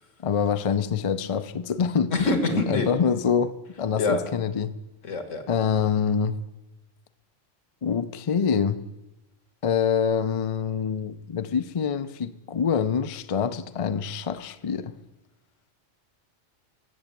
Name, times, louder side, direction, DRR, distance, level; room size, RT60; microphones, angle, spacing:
voice 1, 0.2-4.7 5.5-6.4 7.8-8.8 9.6-14.9, left 7 dB, 40° left, 0.5 m, -25 dB
voice 2, 2.1-2.9 4.0-4.2 5.0-5.4, left 2 dB, 80° left, 2.0 m, -25 dB
14.0 x 8.0 x 8.7 m
omnidirectional pair, 1.3 m